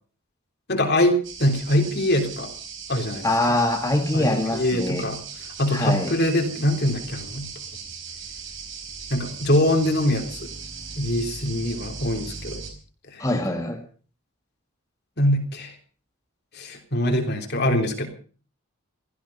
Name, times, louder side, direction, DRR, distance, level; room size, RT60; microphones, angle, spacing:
voice 1, 0.7-2.5 2.9-3.3 4.1-5.2 5.6-7.5 9.1-10.5 10.9-12.6 13.1-13.2 15.2-15.7 16.5-18.1, left 1 dB, 50° left, 4 dB, 3.4 m, -23 dB
sound 1, 1.2-12.7, right 5 dB, 55° right, 4.8 m, -38 dB
voice 2, 3.2-5.0 5.7-6.2 13.2-13.8, left 1 dB, 15° left, 1 dB, 2.0 m, -23 dB
17.0 x 15.0 x 5.5 m, 0.41 s
head